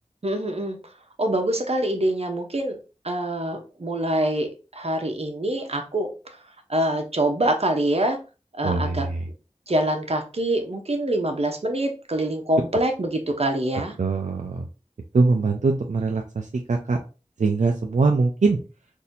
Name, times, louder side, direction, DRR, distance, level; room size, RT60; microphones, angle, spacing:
voice 1, 0.2-0.8 1.2-2.8 3.0-6.4 6.7-8.2 8.5-9.0 9.7-14.0, right 1 dB, 55° right, 4 dB, 0.8 m, -25 dB
voice 2, 8.6-9.2 14.0-14.7 15.1-17.0 17.4-18.6, right 3 dB, 80° right, 2 dB, 0.4 m, -22 dB
4.1 x 2.7 x 2.6 m, 0.33 s
wide cardioid pair, 50°, 12 cm